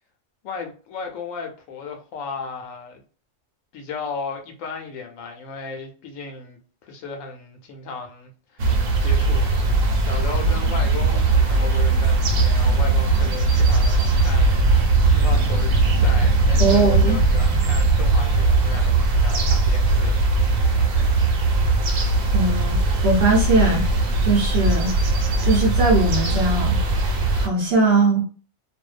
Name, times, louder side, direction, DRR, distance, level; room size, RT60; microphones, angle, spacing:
voice 1, 0.4-3.0 3.7-9.6 10.0-20.3 20.6-20.9 22.9-23.0, left 5 dB, 80° left, 1.0 m, -35 dB
sound 1, 8.6-27.5, right 3 dB, 80° right, 1.0 m, -19 dB
voice 2, 16.6-17.2 20.9-21.0 21.7-21.8 22.3-23.8 24.2-24.9 25.4-27.0 27.4-28.2, right 3 dB, 55° right, 0.8 m, -20 dB
2.5 x 2.1 x 2.4 m
omnidirectional pair, 1.4 m